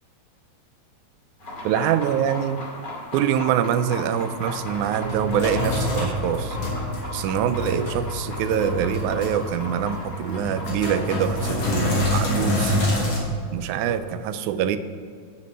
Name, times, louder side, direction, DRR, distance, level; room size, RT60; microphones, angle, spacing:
sound 1, 1.4-12.9, left 2 dB, 35° left, 2.8 m, -37 dB
voice 1, 1.6-2.6 3.1-6.6 7.1-12.8 13.5-14.8, right 9 dB, 80° right, 11 dB, 1.9 m, -24 dB
Sink (filling or washing), 4.3-13.2, left 1 dB, 55° left, 3.2 m, -27 dB
9.7 x 6.3 x 6.6 m, 2.3 s
omnidirectional pair, 3.6 m